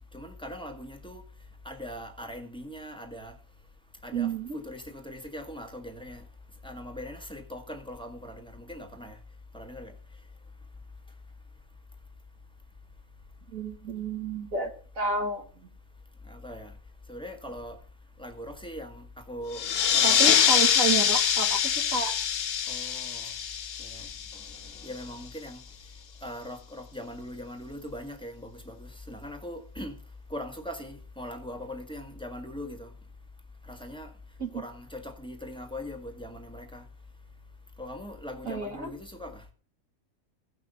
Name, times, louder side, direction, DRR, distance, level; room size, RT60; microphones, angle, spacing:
voice 1, 0.1-1.2 1.7-3.4 4.0-6.2 6.6-9.2 9.5-9.9 16.3-16.7 17.1-17.8 18.2-19.7 19.9-20.4 22.7-23.3 23.8-25.6 26.2-30.0 30.3-32.9 33.7-34.1 34.5-36.9 37.8-39.4, left 1 dB, 5° left, 1.8 m, -41 dB
voice 2, 4.1-4.6 13.5-15.5 20.0-22.1 34.4-34.5 38.5-38.9, right 3 dB, 65° right, 2.5 m, -31 dB
sound 1, 19.5-24.7, left 8 dB, 50° left, 0.8 m, -24 dB
16.0 x 6.0 x 6.7 m
omnidirectional pair, 1.6 m